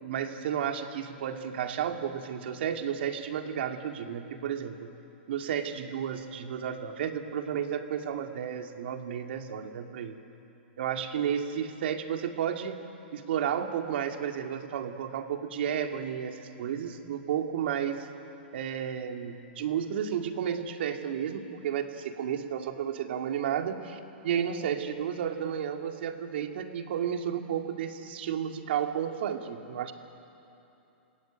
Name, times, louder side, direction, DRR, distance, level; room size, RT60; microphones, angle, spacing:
voice 1, 0.0-4.9 5.3-10.2 10.8-12.8 13.1-18.1 18.5-29.9, right 8 dB, 65° right, 5 dB, 2.3 m, -32 dB
27.5 x 19.5 x 9.1 m, 2.9 s
hypercardioid pair, 125°, 6 cm